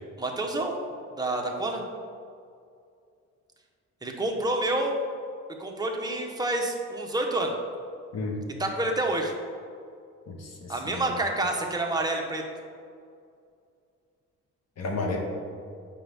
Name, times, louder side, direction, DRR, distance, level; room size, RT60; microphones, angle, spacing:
voice 1, 0.2-0.8 1.1-1.8 4.0-5.0 5.6-7.5 8.6-9.3 10.7-12.4, right 2 dB, 15° right, 0 dB, 1.0 m, -28 dB
voice 2, 10.3-11.2 14.8-15.2, left 3 dB, 60° left, 1 dB, 1.3 m, -33 dB
7.6 x 5.2 x 3.5 m, 2.3 s
cardioid pair, 90°, 30 cm